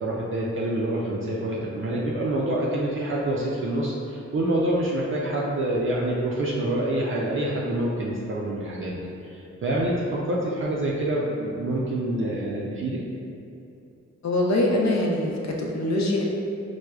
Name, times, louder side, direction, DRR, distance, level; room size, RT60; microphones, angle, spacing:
voice 1, 0.0-9.0 9.2-13.0, right 1 dB, 45° right, -5 dB, 0.4 m, -26 dB
voice 2, 14.2-16.2, left 1 dB, 65° left, -1 dB, 0.5 m, -23 dB
4.6 x 2.0 x 2.2 m, 2.7 s
wide cardioid pair, 90°, 29 cm